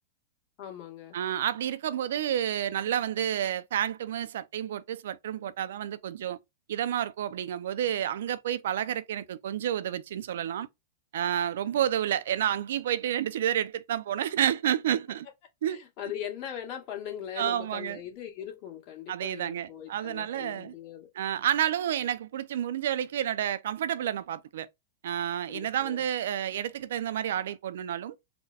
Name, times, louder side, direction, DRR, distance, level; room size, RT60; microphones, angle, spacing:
voice 1, 0.6-1.2 15.7-21.1 25.5-26.0, left 10 dB, 45° left, 1.8 m, -40 dB
voice 2, 1.1-6.4 6.7-10.7 11.1-15.3 15.6-15.8 17.4-18.0 19.1-20.7 21.1-24.7 25.0-28.2, right 10 dB, 75° right, 0.5 m, -30 dB
4.1 x 2.2 x 4.0 m
hypercardioid pair, 135°, 0 cm